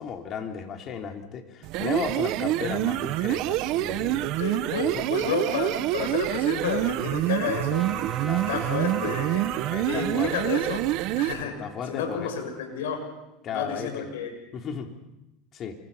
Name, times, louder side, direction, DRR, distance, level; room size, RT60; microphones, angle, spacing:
voice 1, 0.0-4.3 4.8-5.0 8.2-8.5 9.7-10.3 11.4-12.3 13.4-14.1 14.5-14.9 15.5-15.8, left 7 dB, 40° left, 4 dB, 3.4 m, -34 dB
sound 1, 1.6-11.4, right 16 dB, 55° right, 1.0 m, -27 dB
voice 2, 4.4-7.9 8.5-9.4 9.9-10.8 11.2-11.5 11.9-13.0 13.5-14.3, left 6 dB, 90° left, 4 dB, 6.4 m, -30 dB
Trumpet, 7.7-13.2, right 3 dB, 15° right, 2.2 m, -41 dB
28.0 x 24.0 x 5.7 m, 0.92 s
supercardioid pair, 125°, 0 cm